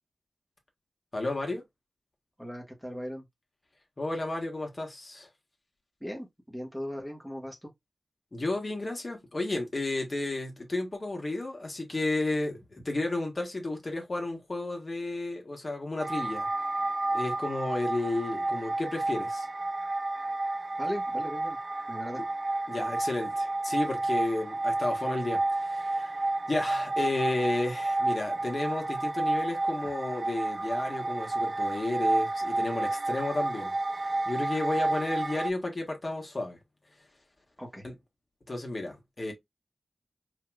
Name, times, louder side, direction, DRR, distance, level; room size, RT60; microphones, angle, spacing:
voice 1, 1.1-1.6 4.0-5.3 8.3-16.5 17.1-19.5 22.7-33.8 34.2-36.6 37.8-37.9 38.5-39.3, left 2 dB, 40° left, 1.6 m, -32 dB
voice 2, 2.4-3.2 6.0-7.7 20.8-21.6 21.9-22.2 37.6-37.8, equal, 5° right, 1.5 m, -38 dB
sound 1, 16.0-35.5, right 2 dB, 50° right, 0.3 m, -31 dB
5.0 x 2.9 x 2.4 m
cardioid pair, 55°, 0 cm